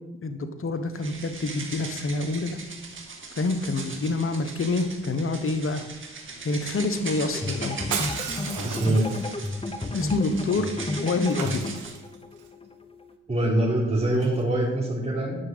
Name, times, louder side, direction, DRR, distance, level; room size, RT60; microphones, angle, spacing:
voice 1, 0.2-2.5 3.4-5.8 6.4-7.8 9.9-10.7 11.0-11.6, left 3 dB, 45° left, 8 dB, 1.2 m, -27 dB
sound 1, 0.9-12.0, right 3 dB, 40° right, 2.2 m, -39 dB
sound 2, 7.3-13.2, left 2 dB, 20° left, 1.0 m, -33 dB
Shatter, 7.9-9.5 11.3-12.4 14.1-14.4, right 7 dB, 80° right, 1.3 m, -34 dB
voice 2, 8.6-9.1 13.3-15.4, right 1 dB, 20° right, -7 dB, 4.0 m, -24 dB
10.5 x 6.1 x 6.2 m, 1.0 s
supercardioid pair, 55°, 30 cm